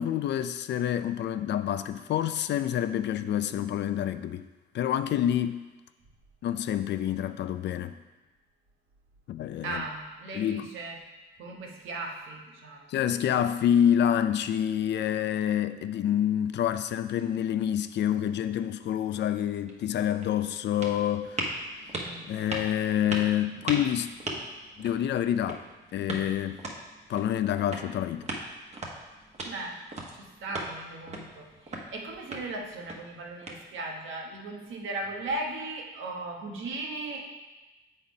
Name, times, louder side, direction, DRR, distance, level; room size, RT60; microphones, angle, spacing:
voice 1, 0.0-4.5 4.7-5.7 6.4-8.0 9.3-9.8 10.3-10.7 12.9-21.6 22.2-24.4 24.8-25.6 25.9-26.6 27.1-28.3, left 10 dB, 60° left, 0.4 m, -27 dB
voice 2, 9.6-11.0 11.4-12.9 21.9-22.3 29.4-29.8 30.1-37.2, right 2 dB, 80° right, 1.2 m, -37 dB
sound 1, 19.7-34.1, right 1 dB, 35° right, 1.2 m, -40 dB
7.1 x 4.1 x 5.2 m
cardioid pair, 90°, 20 cm